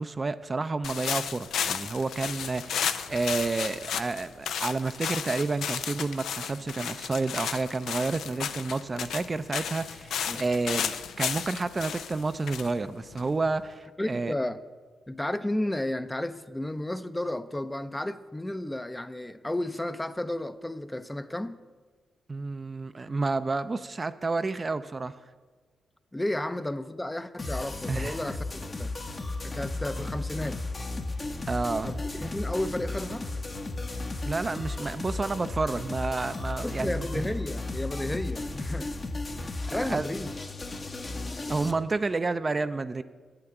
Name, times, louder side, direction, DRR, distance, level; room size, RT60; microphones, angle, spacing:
voice 1, 0.0-14.3 22.3-25.2 27.9-28.2 31.5-32.0 34.3-37.2 39.7-40.1 41.5-43.0, right 3 dB, 35° right, 0.4 m, -30 dB
sound 1, 0.8-13.6, left 8 dB, 80° left, 0.4 m, -34 dB
voice 2, 14.0-14.6 15.1-21.6 26.1-28.9 29.4-30.6 31.8-33.3 36.6-39.1 39.4-40.3, left 1 dB, 15° left, 0.5 m, -33 dB
sound 2, 27.4-41.7, left 2 dB, 40° left, 0.9 m, -34 dB
8.3 x 5.9 x 7.9 m
supercardioid pair, 50°, 0 cm